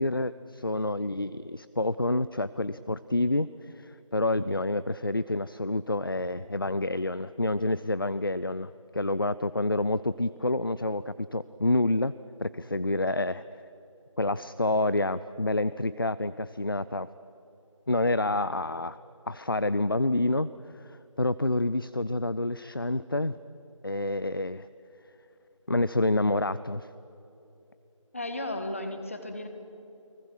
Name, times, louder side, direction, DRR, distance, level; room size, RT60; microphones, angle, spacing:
voice 1, 0.0-12.1 12.4-13.4 14.2-17.1 17.9-19.0 19.3-20.5 20.7-23.4 23.8-24.7 25.7-26.9, left 2 dB, 45° left, 16 dB, 0.5 m, -28 dB
voice 2, 28.1-29.5, left 1 dB, 25° left, 7 dB, 1.5 m, -34 dB
30.0 x 20.0 x 6.2 m, 2.9 s
figure-of-eight pair, 175°, 17 cm